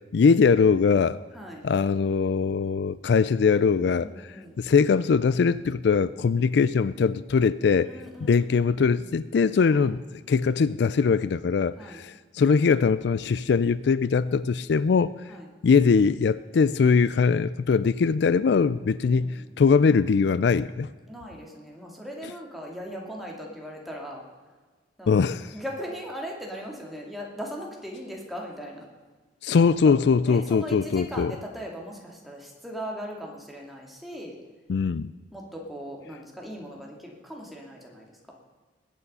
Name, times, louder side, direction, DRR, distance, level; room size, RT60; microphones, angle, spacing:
voice 1, 0.1-1.2 1.6-7.9 8.2-10.0 10.3-15.1 15.6-20.9 25.1-25.5 29.4-31.3 34.7-35.1, left 5 dB, 70° left, 17 dB, 0.4 m, -22 dB
voice 2, 4.0-4.7 7.8-8.4 8.7-9.0 9.7-9.9 11.8-12.0 15.3-15.5 19.0-19.6 21.1-24.2 25.0-28.9 29.6-29.9 30.3-34.4 35.3-38.3, equal, ahead, -2 dB, 2.5 m, -39 dB
20.5 x 8.5 x 5.5 m, 1.3 s
head